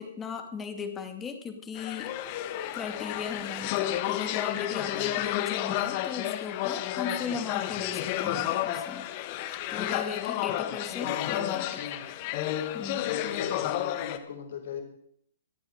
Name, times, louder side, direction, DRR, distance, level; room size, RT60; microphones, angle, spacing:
voice 1, 0.0-2.1 2.7-9.1 9.4-11.8 12.7-13.1, left 5 dB, 15° left, 6 dB, 2.3 m, -37 dB
sound 1, 1.8-14.2, left 13 dB, 35° left, 1.4 m, -31 dB
voice 2, 4.9-5.2 11.0-12.0 13.0-14.8, left 7 dB, 65° left, 3 dB, 5.3 m, -38 dB
26.0 x 8.8 x 4.8 m, 0.65 s
hypercardioid pair, 145°, 0 cm